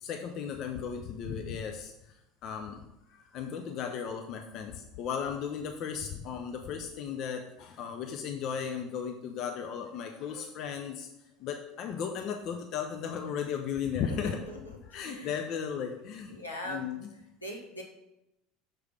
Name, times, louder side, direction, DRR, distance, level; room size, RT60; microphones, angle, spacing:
voice 1, 0.0-1.9 2.4-2.8 3.1-11.1 11.4-14.4 14.9-16.4 16.7-17.0, left 7 dB, 50° left, 5 dB, 0.5 m, -35 dB
voice 2, 14.1-15.4 16.3-16.9 17.4-17.8, left 1 dB, 90° left, -1 dB, 1.1 m, -41 dB
6.0 x 3.2 x 5.0 m, 0.89 s
figure-of-eight pair, 70°, 0 cm